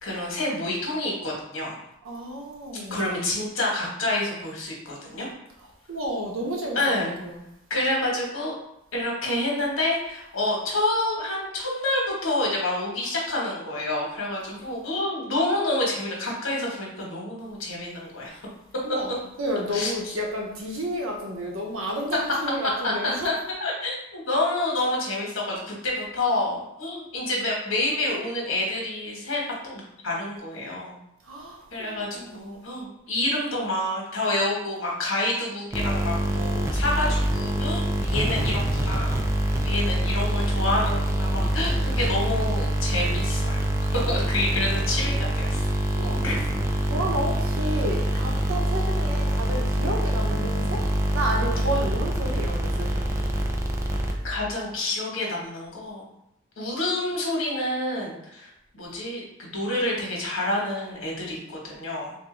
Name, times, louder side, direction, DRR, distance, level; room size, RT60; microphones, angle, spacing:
voice 1, 0.0-1.8 2.9-5.3 6.7-7.1 7.7-8.6 8.9-18.4 19.7-20.2 22.8-23.3 23.6-31.0 31.7-39.1 39.6-43.6 43.9-45.6 46.2-46.5 54.2-56.1 56.6-58.5 58.7-62.1, left 1 dB, 85° left, -3 dB, 1.3 m, -28 dB
voice 2, 2.0-3.1 5.9-7.5 18.8-23.3 31.2-32.6 45.9-46.3 46.8-50.9 51.1-53.1, equal, 90° right, 0 dB, 0.9 m, -31 dB
sound 1, 35.7-54.5, right 1 dB, 15° right, 0.3 m, -25 dB
3.5 x 2.7 x 3.8 m, 0.81 s
head